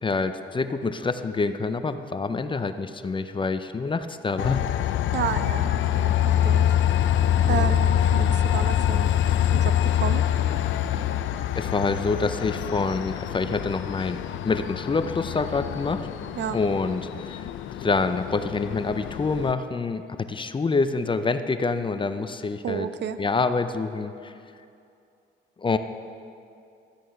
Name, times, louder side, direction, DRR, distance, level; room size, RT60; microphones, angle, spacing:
voice 1, 0.0-4.7 7.5-7.7 10.9-11.0 11.6-16.1 16.5-17.5 17.8-22.9 23.2-24.3 25.6-25.8, left 4 dB, 25° left, 10 dB, 0.6 m, -26 dB
Train, 4.4-19.5, left 10 dB, 75° left, 0.5 m, -25 dB
voice 2, 5.1-6.7 7.5-9.1 9.5-10.2 16.4-16.6 22.6-23.2, right 9 dB, 65° right, 11 dB, 0.6 m, -31 dB
13.0 x 9.0 x 5.8 m, 2.5 s
cardioid pair, 90°, 20 cm